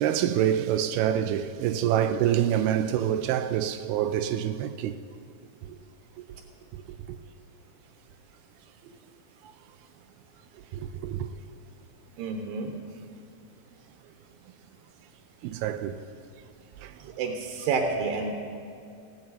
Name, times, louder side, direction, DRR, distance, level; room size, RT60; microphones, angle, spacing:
voice 1, 0.0-5.0 5.6-5.8 6.2-6.3 6.7-7.1 10.8-11.3 15.4-16.0 16.8-16.9, right 10 dB, 90° right, 2.6 m, -26 dB
voice 2, 12.2-12.7 17.0-18.3, right 4 dB, 75° right, 2.7 m, -29 dB
19.0 x 16.5 x 4.2 m
omnidirectional pair, 4.4 m